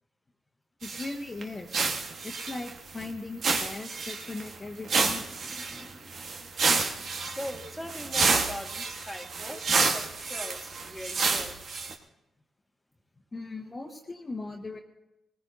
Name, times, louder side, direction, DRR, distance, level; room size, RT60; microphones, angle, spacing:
voice 1, 0.8-2.0 2.2-5.2 13.3-14.8, left 3 dB, 30° left, 0 dB, 1.3 m, -38 dB
sound 1, 0.8-1.1 1.4-1.5 1.7-3.1 3.4-4.5 4.9-11.9, right 4 dB, 60° right, 1.4 m, -29 dB
voice 2, 5.0-11.6, left 1 dB, ahead, 0 dB, 2.0 m, -42 dB
19.0 x 19.0 x 2.7 m, 0.95 s
supercardioid pair, 65°, 0 cm